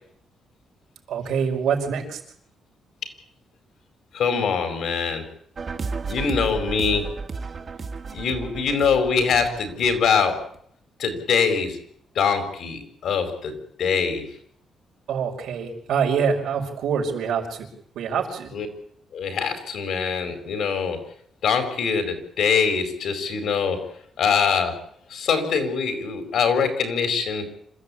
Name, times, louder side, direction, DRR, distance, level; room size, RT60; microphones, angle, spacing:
voice 1, 1.1-2.2 15.1-17.7 17.9-18.5, right 6 dB, 85° right, 1 dB, 5.1 m, -25 dB
voice 2, 4.1-5.2 6.1-7.1 8.1-10.3 11.0-11.8 12.1-13.5 13.8-14.3 18.5-18.7 19.1-21.0 21.4-23.8 24.2-24.7 25.1-27.5, left 6 dB, 65° left, 7 dB, 4.7 m, -23 dB
sound 1, 5.6-10.6, right 4 dB, 35° right, 1.9 m, -33 dB
26.5 x 14.5 x 8.6 m, 0.67 s
cardioid pair, 155°, 0 cm